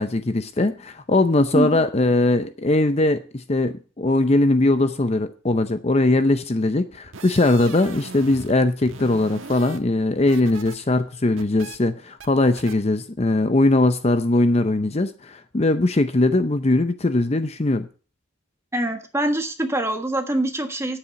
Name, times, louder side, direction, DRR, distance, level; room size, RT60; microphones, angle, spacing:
voice 1, 0.0-17.9, left 2 dB, 30° left, 10 dB, 0.6 m, -20 dB
sound 1, 6.9-8.5 8.8-10.7 11.0-11.8 12.2-12.3 12.6-12.7, right 4 dB, 80° right, 1.3 m, -40 dB
voice 2, 18.7-21.0, right 1 dB, 15° right, 5 dB, 1.3 m, -24 dB
10.0 x 8.4 x 5.9 m, 0.37 s
head